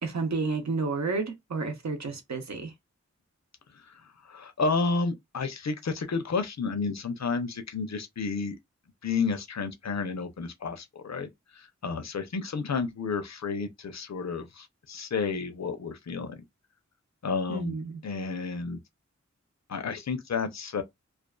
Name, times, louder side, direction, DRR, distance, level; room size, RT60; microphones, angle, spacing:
voice 1, 0.0-2.7 17.5-18.0, right 4 dB, 70° right, 0.7 m, -31 dB
voice 2, 3.7-8.6 9.0-16.4 17.2-17.7 18.0-18.8 19.7-20.8, left 4 dB, 65° left, 0.6 m, -31 dB
2.5 x 2.3 x 2.2 m
wide cardioid pair, 55°, 29 cm